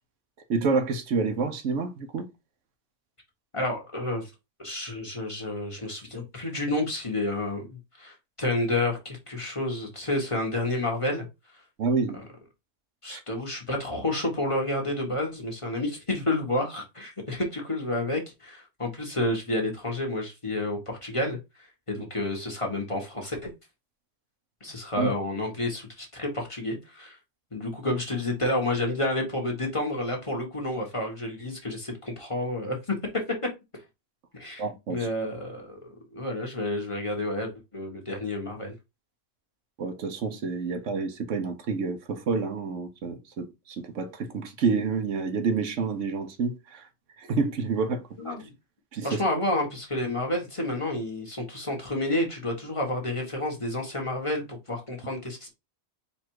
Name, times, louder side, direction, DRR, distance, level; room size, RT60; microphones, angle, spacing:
voice 1, 0.5-2.3 11.8-12.2 13.1-13.2 25.0-25.1 34.6-35.1 39.8-46.9 47.2-48.0 48.9-49.2, right 4 dB, 90° right, 1.2 m, -28 dB
voice 2, 3.5-4.3 4.6-11.3 13.0-21.4 21.9-23.5 24.6-27.2 27.5-33.0 34.3-34.6 34.9-38.7 48.2-48.4 49.0-55.5, left 1 dB, 25° left, 1.2 m, -30 dB
4.2 x 2.5 x 4.6 m
omnidirectional pair, 1.2 m